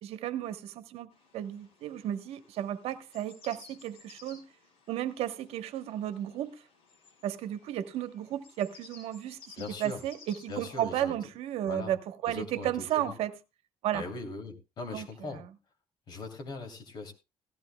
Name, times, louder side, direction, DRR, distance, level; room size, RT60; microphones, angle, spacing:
voice 1, 0.0-4.4 4.9-6.6 7.2-13.3 13.8-14.0 14.9-15.1 15.3-15.4, right 11 dB, 80° right, 1.0 m, -34 dB
sound 1, 1.1-11.0, left 4 dB, 65° left, 6.2 m, -57 dB
voice 2, 9.6-10.0 10.5-11.1 11.6-11.9 12.2-13.1 13.9-15.4 16.1-17.1, left 3 dB, 45° left, 2.8 m, -40 dB
17.5 x 14.5 x 2.2 m
cardioid pair, 165°, 10 cm